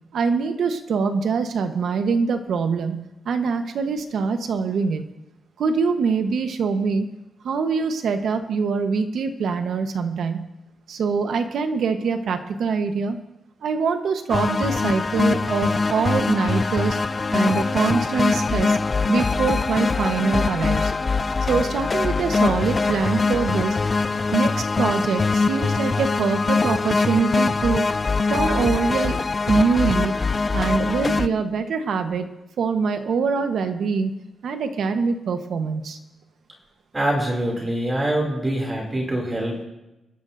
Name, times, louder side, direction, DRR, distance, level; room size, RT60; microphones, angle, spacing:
voice 1, 0.1-5.1 5.6-7.1 7.4-10.5 10.9-13.2 13.6-17.0 17.3-18.8 19.1-20.9 21.5-23.8 24.3-27.9 28.3-29.2 29.5-30.1 30.5-32.3 32.6-34.1 34.4-36.0, right 5 dB, 75° right, 7 dB, 1.2 m, -24 dB
sound 1, 14.3-31.3, left 4 dB, 30° left, 0.4 m, -22 dB
voice 2, 36.9-39.7, right 1 dB, 20° right, -1 dB, 2.9 m, -24 dB
23.0 x 12.0 x 2.7 m, 0.95 s
cardioid pair, 120°, 0 cm